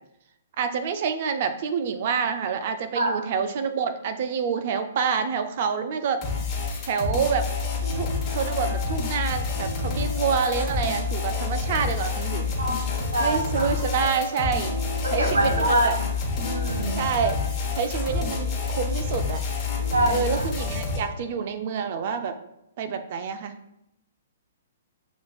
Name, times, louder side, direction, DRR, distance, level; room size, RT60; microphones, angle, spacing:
voice 1, 0.6-6.2 6.8-7.5 8.0-12.5 13.2-14.7 15.1-16.0 17.0-17.4 17.8-19.4 20.1-22.3 22.8-23.5, right 6 dB, 50° right, 8 dB, 0.5 m, -27 dB
sound 1, 6.2-21.0, left 4 dB, 25° left, 1.1 m, -28 dB
sound 2, 7.8-21.5, equal, 20° right, 1.1 m, -40 dB
voice 2, 12.6-13.7 15.0-15.9 16.4-17.0 19.9-20.2, right 1 dB, 80° right, 2 dB, 1.1 m, -25 dB
6.9 x 2.5 x 2.3 m, 0.82 s
hypercardioid pair, 130°, 0 cm